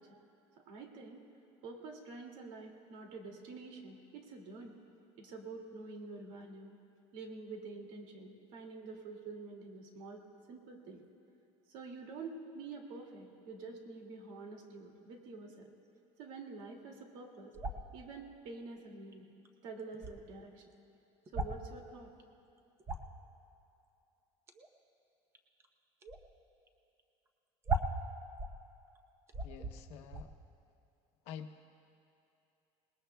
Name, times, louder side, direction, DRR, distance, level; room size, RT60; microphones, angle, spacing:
voice 1, 0.7-1.2 1.6-4.8 5.2-6.8 7.1-10.2 10.5-11.0 11.7-15.7 16.2-17.5 17.9-19.3 19.6-20.6 21.3-22.1, right 3 dB, 75° right, 1 dB, 2.4 m, -47 dB
sound 1, 17.5-17.9 19.1-19.2 19.5-19.6 19.8-20.1 21.3-21.7 22.2-22.3 22.6-23.2 24.5-24.7 25.4-25.7 26.0-26.2 26.7-26.8 27.0-27.1 27.6-28.6 29.0-29.1 29.3-29.8 30.0-30.3, right 2 dB, 20° right, 0.8 m, -37 dB
voice 2, 29.4-30.3 31.3-31.5, left 8 dB, 60° left, 7 dB, 0.9 m, -47 dB
27.5 x 20.0 x 2.3 m, 2.8 s
cardioid pair, 170°, 12 cm